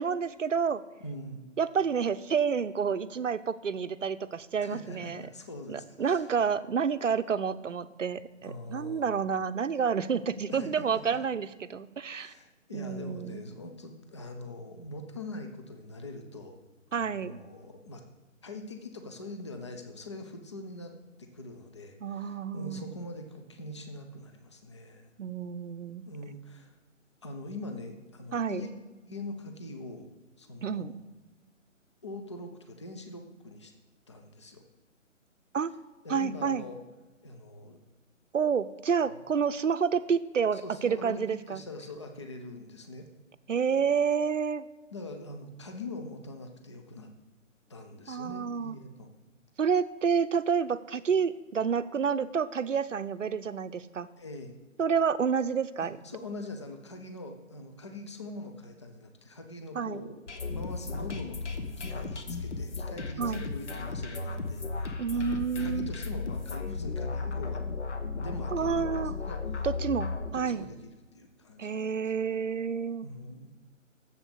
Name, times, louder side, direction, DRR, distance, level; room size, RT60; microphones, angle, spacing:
voice 1, 0.0-0.8 1.6-5.2 5.7-12.3 12.7-13.4 16.9-17.4 22.0-22.9 25.2-26.0 28.3-28.6 30.6-30.9 35.5-35.7 36.1-36.6 38.3-41.6 43.5-44.7 48.1-48.8 49.6-54.1 54.8-56.0 59.8-60.1 63.2-63.4 65.0-65.9 68.5-69.1 69.6-70.7 71.6-73.1, right 6 dB, 70° right, 14 dB, 0.6 m, -29 dB
voice 2, 1.0-1.5 4.6-6.3 8.4-9.1 10.5-11.2 12.1-16.6 16.9-18.0 18.4-20.9 21.2-25.1 26.1-26.7 27.2-28.7 29.1-30.1 30.4-31.0 32.0-33.7 34.1-34.6 36.0-36.8 37.2-37.8 39.1-39.2 40.5-43.1 44.9-47.1 47.7-49.1 54.2-54.5 55.8-67.6 68.2-69.7 70.3-70.8 71.1-71.9 73.0-73.5, left 2 dB, 25° left, 5 dB, 0.6 m, -43 dB
sound 1, 60.3-70.3, left 4 dB, 60° left, 1.2 m, -35 dB
7.3 x 7.1 x 6.7 m, 1.2 s
figure-of-eight pair, 140°, 39 cm